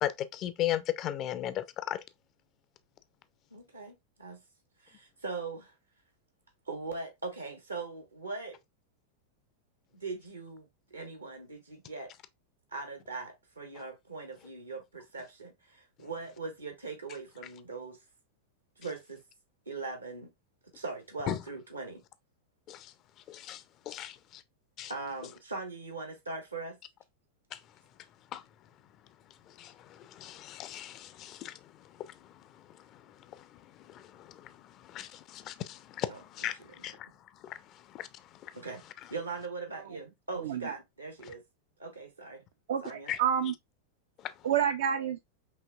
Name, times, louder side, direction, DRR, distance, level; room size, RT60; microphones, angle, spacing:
voice 1, 0.0-2.0 21.3-21.4 22.7-22.9 23.3-24.4 24.8-24.9 27.5-27.6 28.3-28.4 29.5-31.6 32.0-32.2 32.9-33.0 33.3-37.1 37.4-38.5 43.1-43.2, left 12 dB, 35° left, 0.4 m, -37 dB
voice 2, 3.5-4.4 4.8-5.7 6.7-8.6 9.9-12.1 12.7-18.0 18.8-19.2 19.7-20.3 20.7-22.0 24.0-24.1 24.9-26.8 36.1-36.2 38.5-38.8 39.1-41.4 41.8-42.4 42.8-43.1, right 3 dB, 80° right, 1.2 m, -40 dB
voice 3, 40.4-40.7 42.7-43.5 44.4-45.2, right 8 dB, 60° right, 0.4 m, -29 dB
5.5 x 2.8 x 2.3 m
figure-of-eight pair, 90°, 0 cm